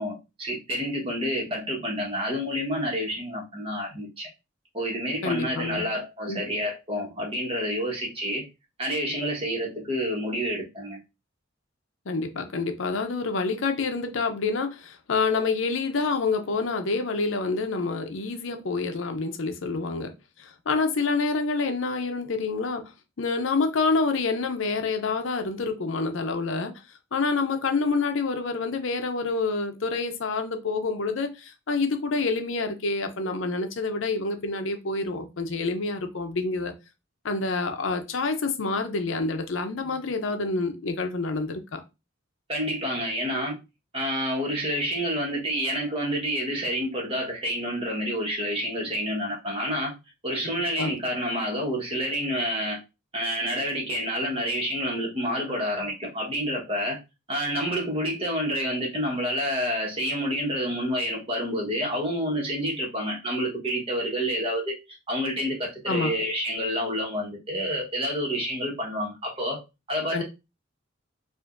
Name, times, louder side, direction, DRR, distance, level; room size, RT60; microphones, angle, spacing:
voice 1, 0.0-4.3 4.7-8.5 8.8-11.0 42.5-43.6 43.9-50.0 50.2-52.8 53.1-57.0 57.3-64.8 65.1-69.6 69.9-70.2, equal, 30° right, 1.2 m, -28 dB
voice 2, 5.2-5.8 6.3-6.4 12.1-20.1 20.4-22.8 23.2-26.7 27.1-36.7 37.2-41.8 50.8-51.0 65.9-66.1 70.1-70.2, left 3 dB, 70° left, 0.6 m, -27 dB
4.9 x 2.5 x 2.5 m
head